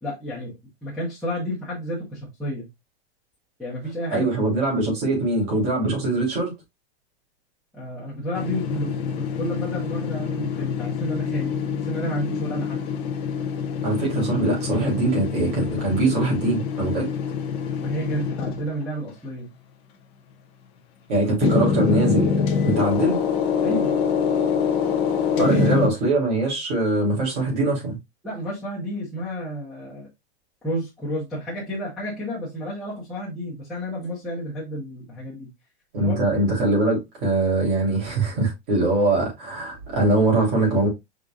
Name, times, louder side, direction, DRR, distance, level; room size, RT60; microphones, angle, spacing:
voice 1, 0.0-2.7 3.6-4.3 5.1-5.2 7.7-12.9 17.8-19.5 23.6-23.9 25.4-25.6 28.2-30.1 30.6-35.5 36.0-36.2, equal, ahead, 1.0 m, -31 dB
voice 2, 4.1-6.5 13.8-17.1 21.1-23.2 25.4-28.0 35.9-40.9, right 2 dB, 40° right, 3.2 m, -22 dB
sound 1, 8.3-18.8 21.4-25.9, left 6 dB, 15° left, 0.5 m, -25 dB
5.3 x 3.8 x 2.4 m
supercardioid pair, 170°, 33 cm